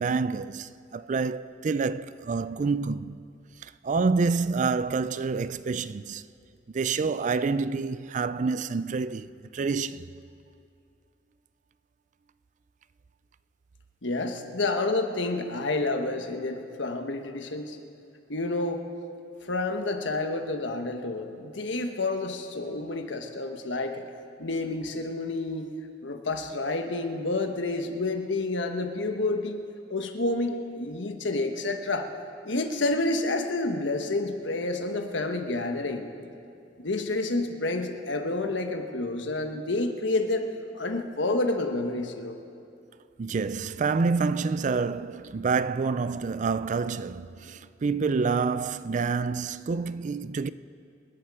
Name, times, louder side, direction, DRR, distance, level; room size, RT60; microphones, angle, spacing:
voice 1, 0.0-3.2 3.6-6.2 6.7-10.1 43.2-50.5, right 4 dB, 45° right, 0.4 m, -28 dB
voice 2, 14.0-17.8 18.3-18.8 19.4-24.0 24.4-25.7 26.0-29.6 29.9-32.1 32.4-36.1 36.8-40.5 40.7-42.3, left 2 dB, 85° left, 1.3 m, -29 dB
27.0 x 11.0 x 4.9 m
head